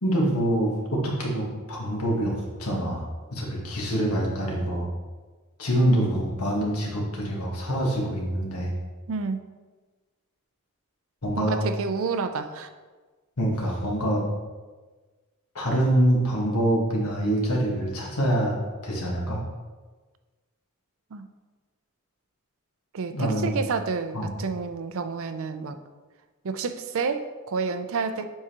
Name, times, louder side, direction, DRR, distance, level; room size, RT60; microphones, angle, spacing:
voice 1, 0.0-3.0 3.3-4.9 5.6-8.7 11.2-11.6 13.4-14.2 15.5-18.6 18.8-19.4 23.1-23.5 24.1-24.3, right 1 dB, 85° left, -1 dB, 1.4 m, -25 dB
voice 2, 9.1-9.4 11.4-12.7 21.1-21.3 22.9-25.8 26.4-28.3, right 5 dB, 65° right, 9 dB, 0.5 m, -29 dB
7.3 x 4.7 x 2.9 m, 1.3 s
head